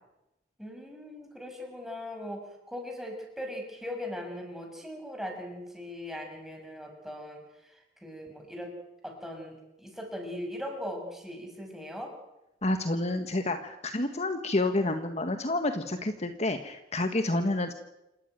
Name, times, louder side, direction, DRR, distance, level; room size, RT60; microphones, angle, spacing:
voice 1, 0.6-2.4 2.7-7.4 8.0-8.7 9.0-12.1, left 1 dB, ahead, 2 dB, 6.2 m, -39 dB
voice 2, 12.6-17.7, left 2 dB, 40° left, 7 dB, 1.5 m, -29 dB
28.0 x 14.5 x 9.2 m, 0.91 s
head